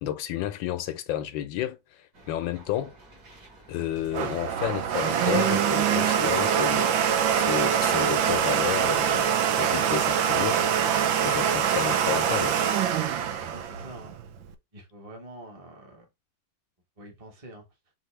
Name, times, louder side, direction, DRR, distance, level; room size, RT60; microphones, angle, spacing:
voice 1, 0.0-2.9 3.7-10.7 11.2-12.6, left 12 dB, 80° left, 1.4 m, -32 dB
sound 1, 2.1-12.8, right 2 dB, 50° right, 2.5 m, -49 dB
Domestic sounds home sounds, 3.8-14.5, right 8 dB, 80° right, 1.4 m, -24 dB
voice 2, 13.5-14.1 14.7-16.1 17.0-17.6, right 1 dB, 20° right, 1.0 m, -46 dB
5.7 x 2.7 x 3.1 m
omnidirectional pair, 2.2 m